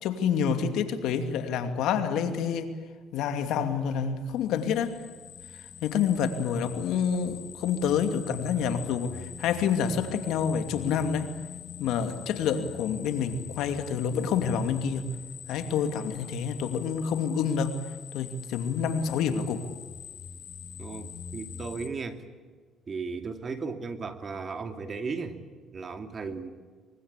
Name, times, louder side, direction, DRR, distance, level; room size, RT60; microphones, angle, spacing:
voice 1, 0.0-2.7 3.1-5.0 5.8-11.3 11.8-15.1 15.5-17.8 18.1-19.7, left 7 dB, 80° left, 7 dB, 2.6 m, -28 dB
sound 1, 4.5-21.9, left 7 dB, 55° left, 2.5 m, -44 dB
voice 2, 20.8-22.2 22.9-25.4 25.7-26.5, right 4 dB, 35° right, 7 dB, 2.6 m, -35 dB
24.0 x 24.0 x 8.3 m, 1.5 s
cardioid pair, 105°, 0 cm